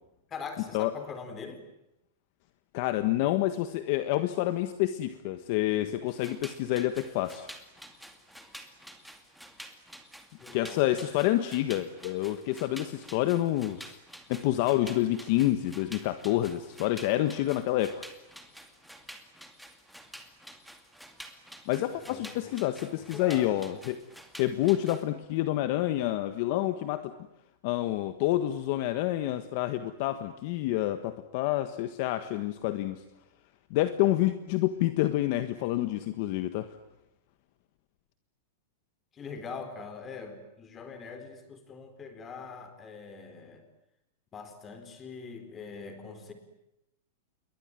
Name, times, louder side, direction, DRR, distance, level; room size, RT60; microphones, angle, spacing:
voice 1, 0.3-1.6 10.4-11.0 21.9-22.5 23.0-23.5 39.1-43.7 44.3-46.3, left 5 dB, 15° left, 8 dB, 4.3 m, -43 dB
voice 2, 2.7-7.5 10.5-14.0 14.3-18.0 21.7-24.0 24.4-27.1 27.6-33.0 33.7-36.8, left 14 dB, 40° left, 10 dB, 1.5 m, -28 dB
sound 1, 6.1-25.0, equal, ahead, 2.4 m, -49 dB
28.5 x 23.0 x 9.1 m, 0.86 s
supercardioid pair, 165°, 0 cm